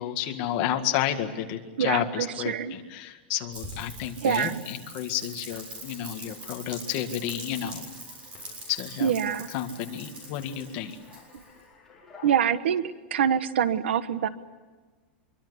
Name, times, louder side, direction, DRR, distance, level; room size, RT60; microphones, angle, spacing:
voice 1, 0.0-7.8 8.7-9.1 9.5-11.0, left 11 dB, 30° left, 5 dB, 1.9 m, -31 dB
voice 2, 1.8-2.8 4.2-4.6 9.0-9.5 12.2-12.8 13.1-14.3, right 8 dB, 80° right, 13 dB, 1.4 m, -25 dB
Rain, 3.5-11.6, right 1 dB, 20° right, 7.0 m, -43 dB
sound 1, 5.5-12.5, left 4 dB, 5° left, 5.4 m, -54 dB
25.0 x 23.5 x 8.3 m, 1.3 s
supercardioid pair, 180°, 6 cm